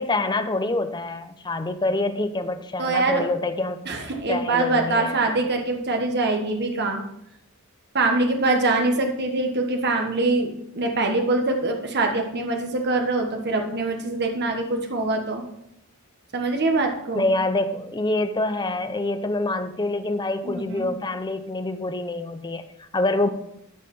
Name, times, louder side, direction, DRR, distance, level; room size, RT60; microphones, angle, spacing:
voice 1, 0.0-3.8 4.3-5.4 17.2-23.3, left 2 dB, 20° left, 9 dB, 0.7 m, -26 dB
voice 2, 2.8-3.3 3.8-7.0 7.9-15.4 16.3-17.3 20.4-20.9, right 2 dB, 50° right, 3 dB, 1.3 m, -24 dB
13.0 x 4.8 x 5.4 m, 0.79 s
head